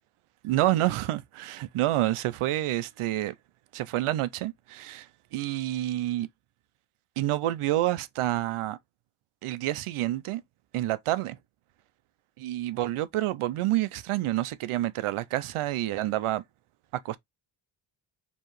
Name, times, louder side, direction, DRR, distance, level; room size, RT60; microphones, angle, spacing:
voice 1, 0.4-3.3 3.7-6.3 7.2-8.8 9.4-10.4 10.7-11.4 12.4-16.4 17.0-17.2, right 15 dB, 80° right, 0.6 m, -28 dB
4.6 x 3.1 x 3.0 m
wide cardioid pair, 180°, 50 cm